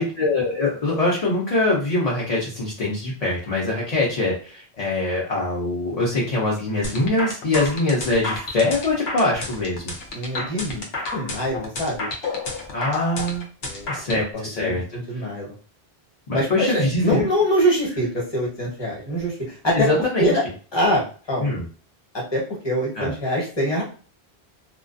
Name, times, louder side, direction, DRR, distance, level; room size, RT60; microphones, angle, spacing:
voice 1, 0.0-9.9 12.7-13.4 13.9-14.8 16.3-17.2 19.7-20.3 21.4-21.6 23.0-23.1, left 2 dB, 45° left, -4 dB, 0.7 m, -23 dB
sound 1, 6.8-14.2, left 3 dB, 80° left, 0.9 m, -30 dB
voice 2, 10.1-10.9 11.1-12.1 13.6-15.5 16.3-20.5 20.7-21.6 22.1-23.8, equal, 25° left, -3 dB, 1.0 m, -24 dB
2.3 x 2.2 x 2.5 m, 0.39 s
omnidirectional pair, 1.1 m